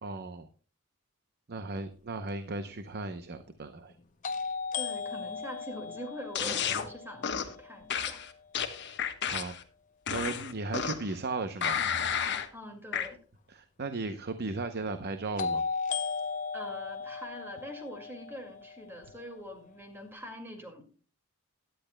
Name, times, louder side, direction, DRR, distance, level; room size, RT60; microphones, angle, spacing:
voice 1, 0.0-0.5 1.5-3.9 9.3-9.6 10.1-11.8 13.5-15.6, right 3 dB, 45° right, 9 dB, 0.7 m, -36 dB
sound 1, 2.3-2.4 4.2-8.1 15.4-19.4, left 5 dB, 35° left, 0.6 m, -36 dB
voice 2, 4.8-8.2 12.5-13.2 16.5-20.8, equal, 10° right, 3 dB, 2.0 m, -44 dB
sound 2, 6.3-6.9 7.2-7.5 7.9-9.6 10.1-11.1 11.6-12.5 12.9-13.1, left 8 dB, 50° left, 1.1 m, -31 dB
17.5 x 10.5 x 2.2 m, 0.38 s
head